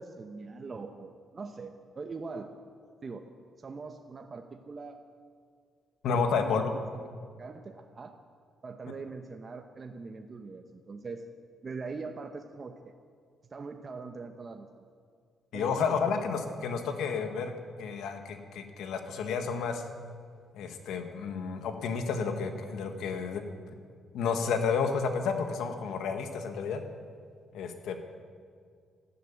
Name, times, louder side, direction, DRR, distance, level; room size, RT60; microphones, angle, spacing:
voice 1, 0.0-2.5 3.0-3.2 3.6-5.0 6.2-6.6 7.0-7.1 7.4-8.1 8.6-11.2 11.6-12.9 13.5-14.7 15.5-16.1, right 4 dB, 40° right, 5 dB, 1.0 m, -42 dB
voice 2, 6.0-6.7 15.5-17.5 17.8-19.8 20.5-23.6 24.1-26.8 27.5-28.0, left 5 dB, 80° left, 6 dB, 1.7 m, -31 dB
12.5 x 12.5 x 8.9 m, 2.1 s
cardioid pair, 75°, 0 cm